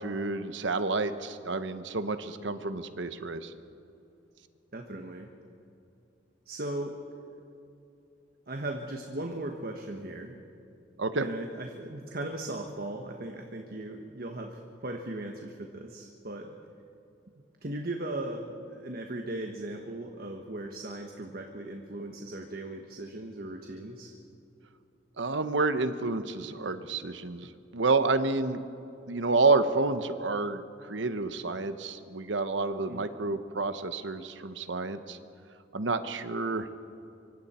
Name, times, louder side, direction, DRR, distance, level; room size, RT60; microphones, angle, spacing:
voice 1, 0.0-3.5 11.0-11.3 25.2-28.6 29.1-35.2 35.7-36.7, right 3 dB, 75° right, 10 dB, 1.0 m, -29 dB
voice 2, 4.7-5.3 6.5-7.0 8.5-10.4 11.1-16.6 17.6-24.1 32.9-33.1, right 1 dB, 50° right, 3 dB, 1.3 m, -38 dB
25.0 x 24.0 x 4.4 m, 2.8 s
head